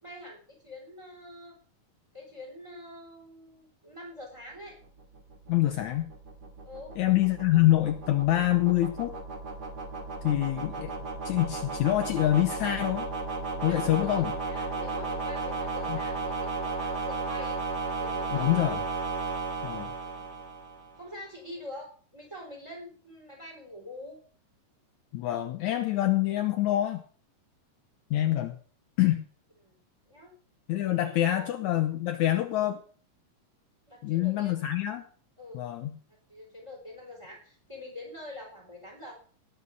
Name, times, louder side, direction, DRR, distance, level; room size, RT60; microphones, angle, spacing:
voice 1, 0.0-1.5 2.1-4.8 6.6-7.0 13.6-17.6 18.0-18.6 20.0-20.3 21.0-24.2 29.6-30.3 30.9-31.5 33.9-34.6 35.4-35.6 36.3-39.1, left 1 dB, 10° right, 0 dB, 3.6 m, -45 dB
sound 1, 4.8-21.0, right 3 dB, 35° right, 2.2 m, -34 dB
voice 2, 5.5-6.1 7.0-9.1 10.2-10.9 11.3-13.1 13.6-14.3 15.9-16.0 18.3-18.8 19.6-19.9 25.1-27.0 28.1-28.6 29.0-29.2 30.7-32.8 34.0-35.0 35.5-36.0, left 14 dB, 70° left, 7 dB, 2.0 m, -26 dB
18.0 x 8.1 x 5.3 m, 0.43 s
omnidirectional pair, 3.8 m